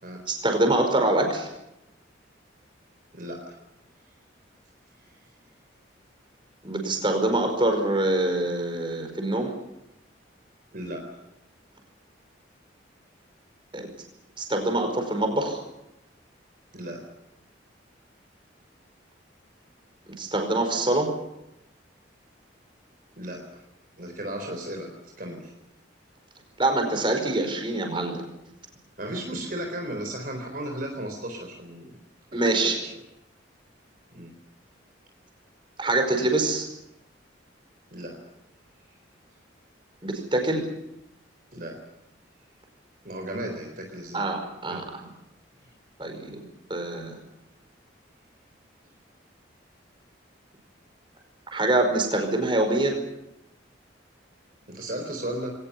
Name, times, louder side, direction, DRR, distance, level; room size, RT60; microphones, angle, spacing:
voice 1, 0.3-1.5 6.6-9.6 13.7-13.9 14.4-15.6 20.2-21.1 26.6-28.2 32.3-32.8 35.8-36.7 40.0-40.7 44.1-45.0 46.0-46.4 46.7-47.2 51.5-53.0, right 2 dB, 25° right, 4 dB, 5.0 m, -25 dB
voice 2, 3.1-3.6 5.1-5.2 10.7-11.1 16.7-17.0 23.2-23.6 24.0-24.9 25.2-25.5 29.0-32.0 32.3-32.9 34.1-34.3 37.9-38.2 41.5-41.8 43.0-44.3 44.7-44.8 45.6-45.7 54.7-55.5, right 1 dB, 45° right, 3 dB, 3.9 m, -35 dB
21.5 x 19.0 x 9.8 m, 0.88 s
head